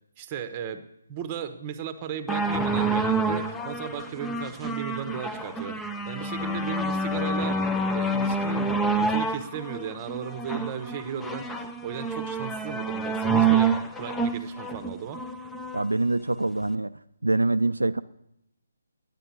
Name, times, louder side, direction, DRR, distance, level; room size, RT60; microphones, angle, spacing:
voice 1, 0.2-0.8 1.1-5.8 6.0-15.2, right 8 dB, 25° right, 10 dB, 0.9 m, -36 dB
sound 1, 2.3-15.8 16.6-16.7, right 3 dB, 5° left, 0.5 m, -27 dB
voice 2, 15.7-16.9 17.2-18.0, right 2 dB, 75° right, 11 dB, 0.4 m, -24 dB
10.0 x 9.1 x 7.2 m, 0.80 s
figure-of-eight pair, 140°, 0 cm